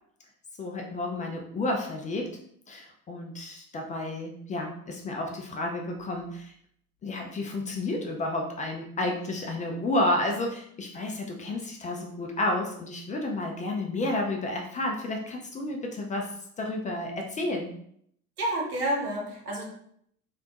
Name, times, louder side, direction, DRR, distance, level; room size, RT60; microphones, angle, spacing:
voice 1, 0.6-2.4 2.7-6.5 7.0-17.7, left 1 dB, 20° left, 2 dB, 0.4 m, -31 dB
voice 2, 18.4-19.7, right 1 dB, 85° right, -1 dB, 0.9 m, -29 dB
3.3 x 2.4 x 2.8 m, 0.67 s
figure-of-eight pair, 70°, 43 cm